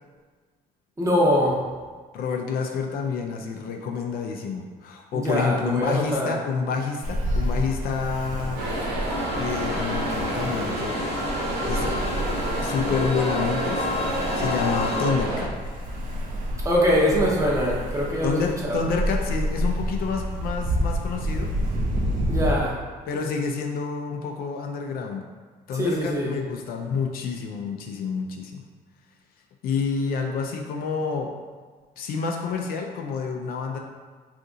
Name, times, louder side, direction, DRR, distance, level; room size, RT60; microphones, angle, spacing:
voice 1, 1.0-1.7 5.1-6.3 16.6-18.9 22.3-22.8 25.7-26.3, equal, 20° right, -3 dB, 0.7 m, -23 dB
voice 2, 2.1-8.6 9.3-11.0 11.7-12.2 12.6-15.5 18.2-21.5 23.1-25.2 25.7-28.6 29.6-31.3 32.0-33.8, left 5 dB, 60° left, 2 dB, 0.4 m, -28 dB
Ocean, 7.0-22.5, equal, 55° right, 0.6 m, -29 dB
sound 1, 8.6-15.4, right 1 dB, 80° right, 0.9 m, -30 dB
sound 2, 9.1-15.1, left 2 dB, 35° left, 0.8 m, -31 dB
2.7 x 2.5 x 3.6 m, 1.5 s
cardioid pair, 110°, 17 cm